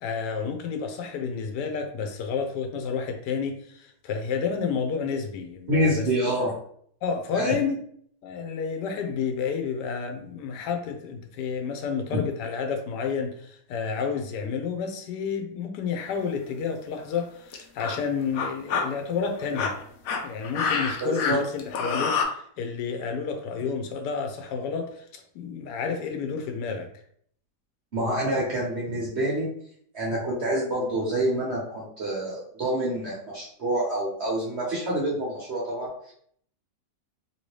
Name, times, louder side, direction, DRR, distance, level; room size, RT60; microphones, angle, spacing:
voice 1, 0.0-6.0 7.0-7.8 8.2-19.7 20.2-26.9, left 6 dB, 85° left, 5 dB, 1.2 m, -30 dB
voice 2, 5.7-6.5 7.3-7.5 21.0-21.4 27.9-29.5 29.9-36.1, right 1 dB, 50° right, -6 dB, 1.0 m, -27 dB
sound 1, 16.0-16.3 17.1-17.2 17.5-18.0 18.3-18.8 19.4-22.2, left 5 dB, 70° left, 0.9 m, -27 dB
3.0 x 2.7 x 3.1 m, 0.62 s
omnidirectional pair, 1.8 m